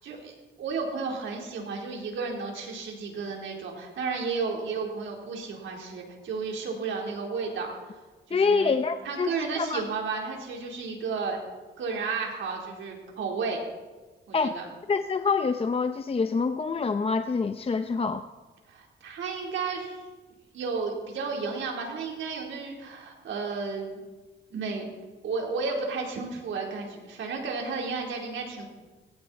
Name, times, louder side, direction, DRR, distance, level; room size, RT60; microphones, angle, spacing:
voice 1, 0.0-8.0 8.3-8.8 9.0-11.4 11.8-13.6 14.3-14.7 18.7-20.0 20.5-24.0 24.5-24.9 25.2-28.6, right 4 dB, 80° right, 0 dB, 4.2 m, -33 dB
voice 2, 8.3-9.3 9.6-9.8 14.3-14.6 14.9-18.3, left 4 dB, 30° left, 9 dB, 0.7 m, -26 dB
18.0 x 17.0 x 4.4 m, 1.2 s
cardioid pair, 95°, 20 cm